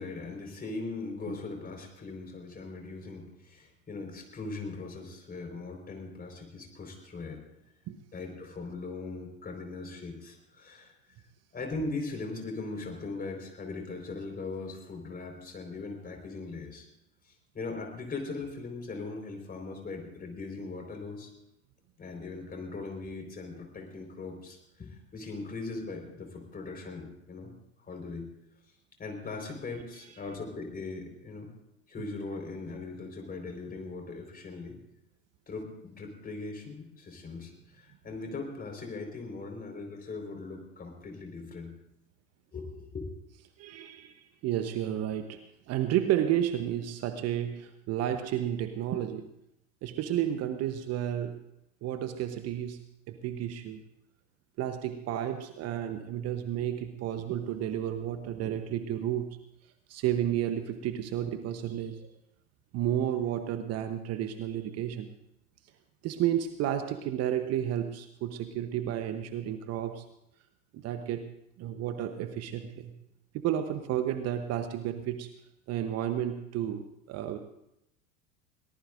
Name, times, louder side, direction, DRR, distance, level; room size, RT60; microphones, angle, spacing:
voice 1, 0.0-7.4 8.1-10.9 11.5-16.9 17.2-21.3 22.0-27.5 27.8-28.3 29.0-31.5 31.9-34.8 35.5-41.7 42.5-43.1, left 3 dB, 20° left, 3 dB, 4.6 m, -40 dB
voice 2, 43.6-45.4 45.7-49.3 49.8-51.4 51.8-52.8 53.1-53.8 54.6-59.4 59.9-62.1 62.7-65.1 66.0-70.0 70.7-71.3 71.6-72.9 73.3-75.3 75.7-77.4, right 11 dB, 40° right, 9 dB, 1.0 m, -32 dB
22.5 x 18.5 x 2.6 m, 0.82 s
figure-of-eight pair, 85°, 40 cm